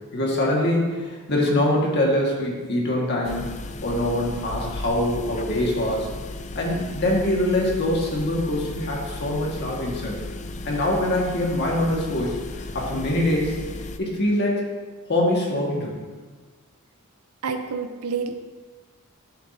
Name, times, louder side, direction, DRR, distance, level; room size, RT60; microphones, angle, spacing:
voice 1, 0.1-3.5 3.8-6.1 6.6-10.1 10.7-13.6 14.0-14.7 15.1-16.0, left 1 dB, 50° left, -2 dB, 1.7 m, -24 dB
sound 1, 3.2-14.0, left 2 dB, 30° left, 0.4 m, -35 dB
voice 2, 17.4-18.3, right 5 dB, 85° right, 7 dB, 0.7 m, -28 dB
11.0 x 7.2 x 2.7 m, 1.4 s
head